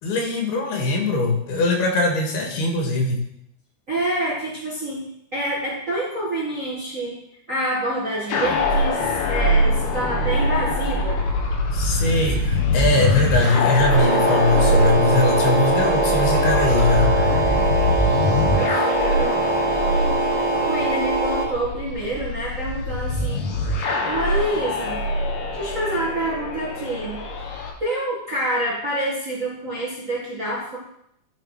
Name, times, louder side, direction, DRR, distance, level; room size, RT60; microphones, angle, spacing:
voice 1, 0.0-3.2 11.7-17.1, left 2 dB, 85° left, 1 dB, 3.8 m, -21 dB
voice 2, 3.9-5.0 5.3-7.2 7.5-9.0 9.3-11.2 18.5-19.4 20.6-23.4 24.0-25.0 25.5-27.2 27.5-30.8, right 1 dB, 45° right, -5 dB, 0.9 m, -27 dB
sound 1, 8.3-27.7, left 1 dB, 60° left, 2.0 m, -23 dB
sound 2, 13.9-21.5, right 2 dB, 20° right, 2.5 m, -22 dB
12.0 x 5.6 x 4.8 m, 0.73 s
omnidirectional pair, 4.4 m